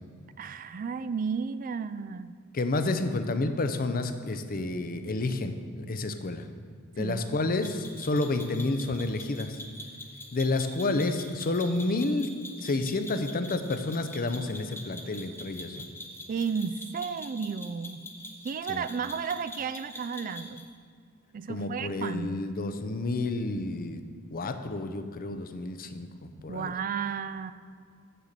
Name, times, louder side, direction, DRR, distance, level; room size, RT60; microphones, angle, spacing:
voice 1, 0.4-2.4 7.0-7.6 16.3-18.0 18.4-20.6 21.3-22.4 26.5-27.5, right 6 dB, 40° right, 13 dB, 0.3 m, -33 dB
voice 2, 2.5-6.5 7.0-9.6 10.3-12.3 12.6-15.8 18.7-18.8 21.5-24.0 24.3-26.7, left 2 dB, 40° left, 9 dB, 0.6 m, -30 dB
sound 1, 7.6-20.7, left 1 dB, 10° left, 0.8 m, -44 dB
6.8 x 6.5 x 7.5 m, 2.1 s
head